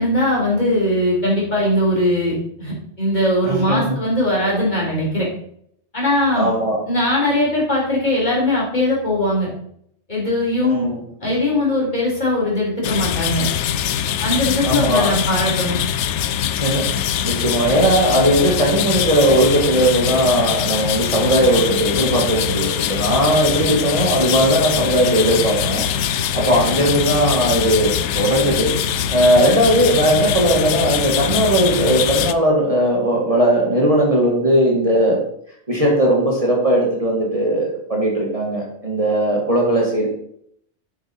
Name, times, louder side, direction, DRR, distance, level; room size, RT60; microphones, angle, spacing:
voice 1, 0.0-5.3 5.9-6.5 6.8-9.5 10.1-10.9 11.2-13.5 14.2-15.8, left 1 dB, 40° left, -5 dB, 4.5 m, -20 dB
voice 2, 3.4-4.0 6.3-6.8 10.6-11.0 14.6-15.1 16.6-28.7 29.1-35.2 35.7-40.1, right 1 dB, 30° right, -2 dB, 2.1 m, -18 dB
sound 1, 12.8-32.3, left 9 dB, 85° left, 0.9 m, -22 dB
8.1 x 7.6 x 4.5 m, 0.68 s
omnidirectional pair, 1.2 m